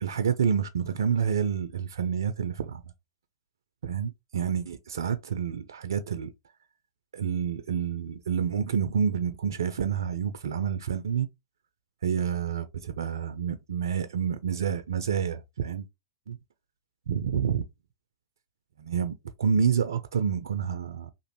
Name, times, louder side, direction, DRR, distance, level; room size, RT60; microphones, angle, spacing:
voice 1, 0.0-2.8 3.8-6.3 7.1-11.3 12.0-15.9 16.3-16.4 17.1-17.6 18.8-21.1, right 7 dB, 75° right, 0.4 m, -28 dB
2.9 x 2.4 x 3.0 m
hypercardioid pair, 110°, 2 cm